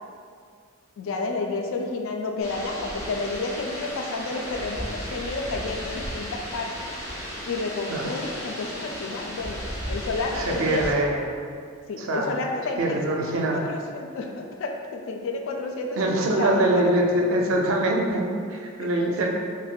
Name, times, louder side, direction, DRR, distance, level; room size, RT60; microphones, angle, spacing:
voice 1, 1.0-6.7 7.5-9.6 9.9-11.0 11.9-17.0 18.9-19.3, left 3 dB, 65° left, 3 dB, 0.3 m, -31 dB
sound 1, 2.4-10.9, equal, 20° left, 1.0 m, -35 dB
voice 2, 10.3-11.2 12.0-12.3 12.8-13.6 16.0-19.3, right 1 dB, 65° right, 1 dB, 0.4 m, -23 dB
3.6 x 2.6 x 2.2 m, 2.1 s
head